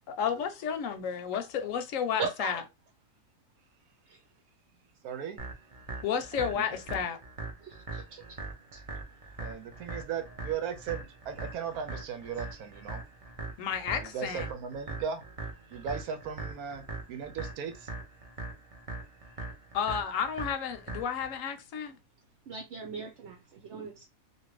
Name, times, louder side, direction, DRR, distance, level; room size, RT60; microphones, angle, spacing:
voice 1, 0.1-2.6 6.0-7.2 13.6-14.5 19.7-22.0, left 7 dB, 70° left, 1.0 m, -32 dB
voice 2, 2.2-2.5 4.1-4.2 7.6-8.0 8.7-8.8 22.5-24.1, right 5 dB, 60° right, 0.9 m, -38 dB
voice 3, 5.0-5.5 6.3-6.8 9.4-13.0 14.0-15.2 15.7-17.9, right 7 dB, 90° right, 1.2 m, -37 dB
sound 1, 5.4-21.4, right 2 dB, 40° right, 0.5 m, -41 dB
2.8 x 2.5 x 3.0 m
omnidirectional pair, 1.5 m